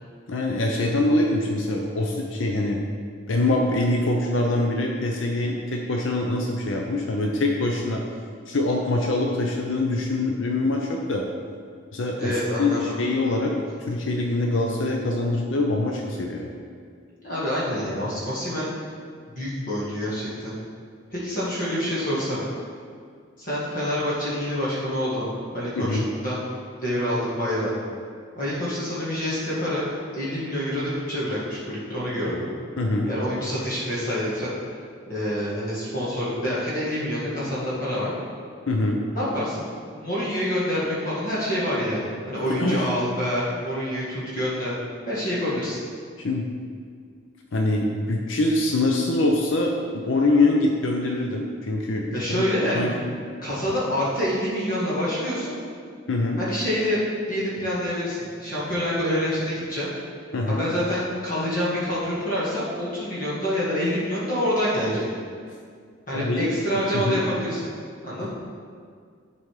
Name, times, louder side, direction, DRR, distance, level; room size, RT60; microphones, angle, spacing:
voice 1, 0.3-2.8 3.3-8.0 8.5-11.2 11.9-13.5 13.9-16.5 25.8-26.1 32.8-33.1 38.7-39.0 42.5-42.9 46.2-46.5 47.5-52.4 52.7-52.9 56.1-56.4 60.3-60.7 66.1-66.5 66.9-67.2 68.2-68.3, left 2 dB, 75° left, 0 dB, 0.7 m, -24 dB
voice 2, 12.2-12.9 13.8-13.9 17.2-18.7 19.3-20.5 21.1-22.4 23.4-25.2 25.5-26.4 26.8-27.7 28.4-29.8 30.1-32.5 33.1-34.5 35.1-38.1 39.1-39.7 39.9-44.7 45.1-45.8 52.1-52.9 53.4-55.6 56.4-57.0 57.3-59.9 60.5-65.1 66.1-67.7 68.0-68.3, equal, 45° left, -8 dB, 2.0 m, -27 dB
11.0 x 4.1 x 4.9 m, 2.1 s
head